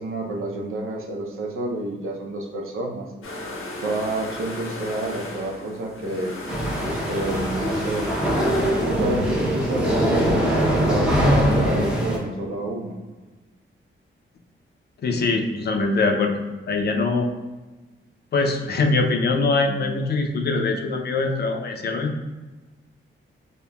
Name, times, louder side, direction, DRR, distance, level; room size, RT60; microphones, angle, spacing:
voice 1, 0.0-3.1 3.8-6.3 6.8-8.2 8.8-10.4 10.8-13.0, right 2 dB, 80° right, 0 dB, 0.6 m, -29 dB
sound 1, 3.2-8.7, left 1 dB, 90° left, 0.7 m, -35 dB
sound 2, 6.5-12.2, equal, 5° right, 0.6 m, -22 dB
voice 2, 15.0-16.4 16.7-17.3 18.3-22.2, left 3 dB, 50° left, 3 dB, 0.4 m, -22 dB
5.2 x 2.1 x 2.2 m, 1.2 s
wide cardioid pair, 150°, 21 cm